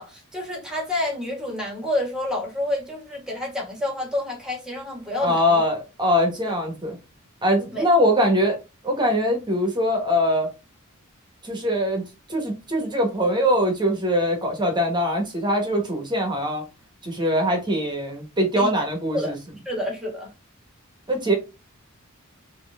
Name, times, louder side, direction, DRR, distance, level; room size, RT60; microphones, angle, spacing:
voice 1, 0.0-5.6 6.5-6.6 7.7-7.9 18.6-19.3 19.7-20.3, left 1 dB, 5° right, 1.8 m, -29 dB
voice 2, 5.2-7.0 7.4-8.6 8.8-10.5 11.4-12.0 12.3-16.6 17.0-19.3 21.1-21.3, equal, 20° right, 1.4 m, -22 dB
4.4 x 3.1 x 3.5 m
head